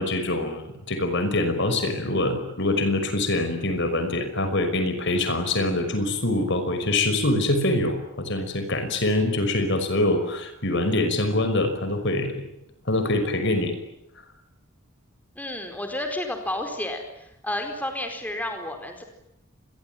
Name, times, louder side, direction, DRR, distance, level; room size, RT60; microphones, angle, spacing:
voice 1, 0.0-12.3 12.9-13.8, left 2 dB, 60° left, 8 dB, 5.7 m, -24 dB
voice 2, 15.4-19.0, left 1 dB, 10° left, 5 dB, 4.4 m, -31 dB
27.0 x 22.0 x 9.4 m, 0.82 s
head